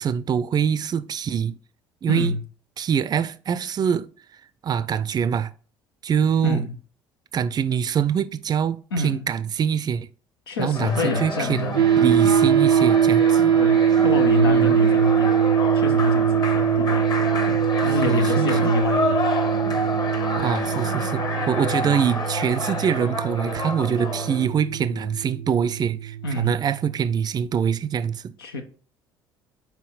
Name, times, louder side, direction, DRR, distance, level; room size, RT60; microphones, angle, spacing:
voice 1, 0.0-1.6 2.0-2.4 2.8-4.1 4.6-5.5 6.0-6.6 7.3-10.1 10.6-13.5 14.4-14.7 18.1-18.5 20.4-28.3, right 8 dB, 35° right, 0.4 m, -24 dB
voice 2, 2.1-2.4 6.4-6.7 8.9-9.3 10.5-11.9 12.2-12.5 13.6-17.1 17.5-19.3 19.6-19.8 26.2-26.6 28.4-28.6, left 2 dB, 80° left, 0.8 m, -27 dB
sound 1, 10.7-24.5, left 3 dB, 35° left, 1.2 m, -29 dB
sound 2, 11.8-27.0, right 9 dB, 85° right, 0.5 m, -22 dB
5.8 x 4.3 x 4.0 m
figure-of-eight pair, 55°, 12 cm